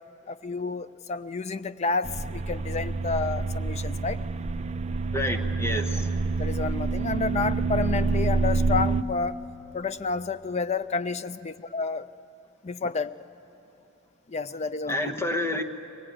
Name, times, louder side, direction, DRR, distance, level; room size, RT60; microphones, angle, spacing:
voice 1, 0.3-4.2 6.4-9.4 9.7-12.0 12.6-13.3 14.3-15.2, left 4 dB, 30° left, 13 dB, 0.5 m, -30 dB
sound 1, 2.0-9.0, right 3 dB, 30° right, 0.5 m, -27 dB
voice 2, 5.1-6.2 14.9-15.6, left 1 dB, 10° left, 4 dB, 1.0 m, -29 dB
24.5 x 18.5 x 8.9 m, 2.9 s
head